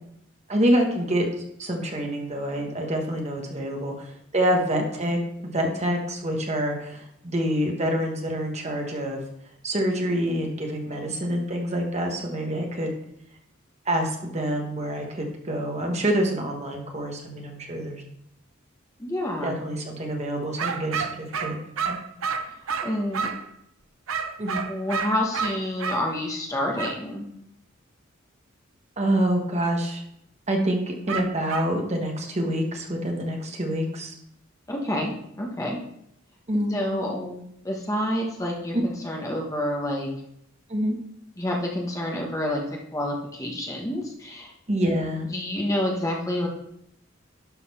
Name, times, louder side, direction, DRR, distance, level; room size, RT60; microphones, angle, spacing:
voice 1, 0.5-1.3 1.6-9.2 9.6-12.9 13.8-18.0 19.4-21.6 21.9-22.0 24.4-24.6 29.0-30.0 30.5-34.1 36.5-36.8 40.7-41.0 44.7-45.3, equal, 35° right, 2 dB, 1.4 m, -26 dB
voice 2, 19.0-19.6 22.8-23.3 24.7-27.3 34.7-35.8 36.7-40.1 41.4-42.6 42.9-44.5 45.3-46.5, left 1 dB, 15° left, -1 dB, 1.3 m, -28 dB
sound 1, 20.6-23.5 24.1-26.0 26.8-27.0 31.1-31.7, right 6 dB, 90° right, 0.7 m, -30 dB
11.5 x 4.2 x 5.6 m, 0.75 s
head